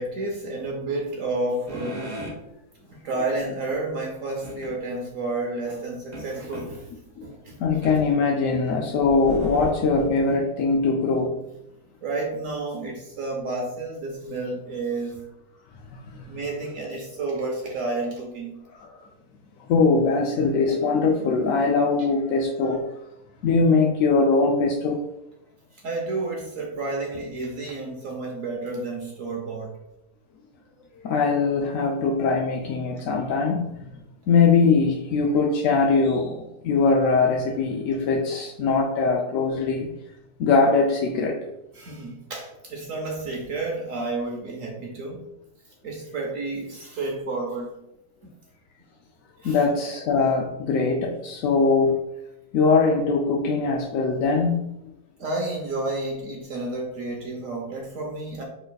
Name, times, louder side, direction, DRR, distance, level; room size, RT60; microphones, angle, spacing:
voice 1, 0.0-2.1 2.8-6.9 7.2-7.9 8.5-8.6 12.0-15.3 16.2-18.6 25.8-29.7 41.7-45.2 45.8-47.7 48.2-48.3 49.4-49.6 55.2-58.4, right 2 dB, 65° right, 0 dB, 1.0 m, -31 dB
sound 1, 1.7-2.4 4.4-4.7 6.1-6.7 7.8-8.0 8.6-10.3, right 1 dB, 30° right, 1.0 m, -34 dB
voice 2, 7.6-11.4 15.9-16.2 18.7-18.9 19.7-22.8 23.4-25.1 31.0-34.0 34.3-39.9 40.4-41.4 49.4-52.0 52.5-54.6, left 4 dB, 70° left, 0 dB, 0.8 m, -21 dB
6.4 x 3.3 x 2.3 m, 0.87 s
omnidirectional pair, 1.7 m